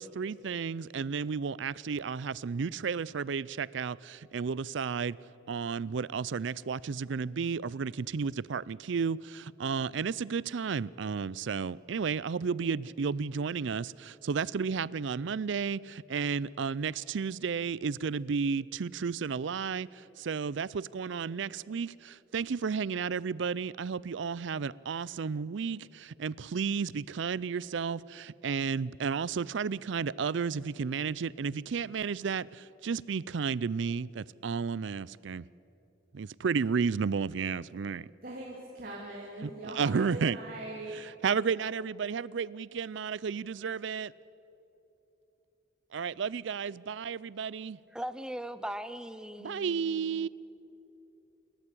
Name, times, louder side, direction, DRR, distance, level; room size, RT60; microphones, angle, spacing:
voice 1, 0.0-5.2 5.5-35.4 36.1-38.1 39.4-40.4 40.9-44.1 45.9-47.8 49.4-50.3, right 5 dB, 65° right, 22 dB, 0.4 m, -32 dB
voice 2, 38.2-41.0, right 1 dB, 45° right, -3 dB, 3.1 m, -41 dB
voice 3, 47.9-50.3, right 1 dB, 5° right, 12 dB, 0.7 m, -40 dB
28.5 x 13.5 x 8.5 m, 3.0 s
head